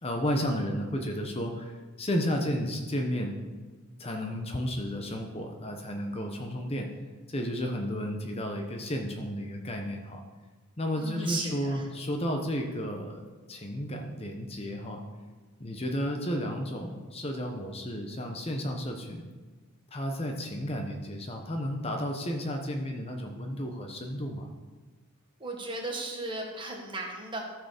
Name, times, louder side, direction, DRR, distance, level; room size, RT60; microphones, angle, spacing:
voice 1, 0.0-3.4 4.0-6.9 7.3-10.2 10.8-15.0 15.6-19.3 19.9-24.5, equal, 25° left, 3 dB, 0.9 m, -32 dB
voice 2, 11.0-11.9 25.4-27.4, right 2 dB, 25° right, 0 dB, 1.6 m, -36 dB
14.0 x 4.8 x 6.6 m, 1.3 s
head